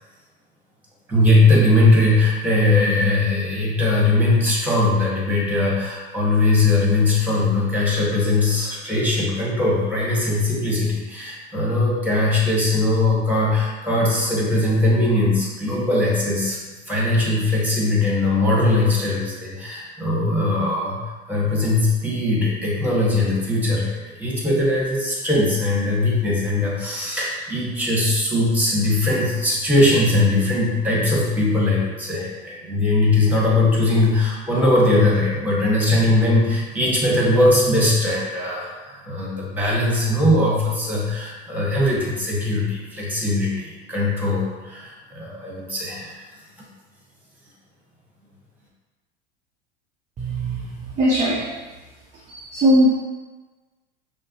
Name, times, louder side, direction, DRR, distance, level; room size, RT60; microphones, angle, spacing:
voice 1, 1.1-16.6 16.9-21.0 21.3-46.2, left 2 dB, 5° right, -4 dB, 1.4 m, -20 dB
voice 2, 50.2-51.8 52.1-52.9, equal, 20° right, -4 dB, 0.6 m, -21 dB
5.8 x 2.1 x 3.0 m, 1.2 s
hypercardioid pair, 95°, 32 cm